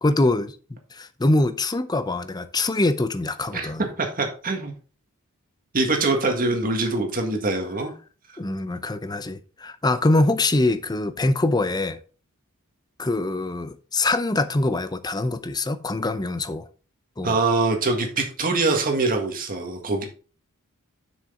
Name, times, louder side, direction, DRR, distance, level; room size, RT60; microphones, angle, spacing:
voice 1, 0.0-3.8 8.4-12.0 13.0-16.7 17.2-17.4, left 2 dB, 20° left, 0.6 m, -24 dB
voice 2, 4.0-4.7 5.7-7.9 17.2-20.1, right 3 dB, 40° right, 1.7 m, -23 dB
7.4 x 6.3 x 3.7 m
head